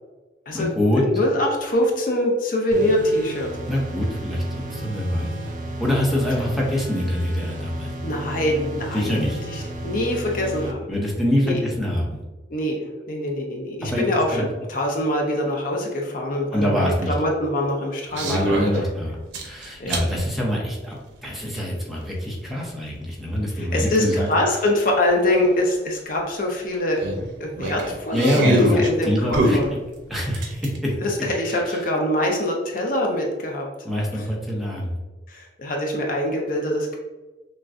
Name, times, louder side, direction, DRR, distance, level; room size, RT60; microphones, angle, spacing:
voice 1, 0.5-1.0 3.7-4.4 4.7-5.3 5.8-7.9 8.9-9.4 10.9-12.2 13.8-14.1 14.3-14.5 16.5-17.1 18.2-19.2 19.4-21.0 21.2-24.3 28.1-29.6 30.1-31.0 31.5-31.8 33.8-35.0, equal, ahead, -4 dB, 0.8 m, -24 dB
voice 2, 1.0-3.5 6.4-6.5 8.0-9.2 9.5-10.8 11.4-11.6 12.5-12.8 13.1-18.6 19.8-20.0 23.6-27.0 27.4-29.7 31.0-33.7 35.3-37.0, left 1 dB, 50° left, 0 dB, 0.6 m, -24 dB
sound 1, 2.7-10.7, right 1 dB, 45° right, 0.5 m, -33 dB
sound 2, 18.1-18.8 19.3-20.1 21.6-21.7 24.4-24.5 24.7-24.8 25.3-25.4 27.0-28.9 29.3-30.8, right 1 dB, 85° right, 0.7 m, -23 dB
6.0 x 2.2 x 2.5 m, 1.2 s
head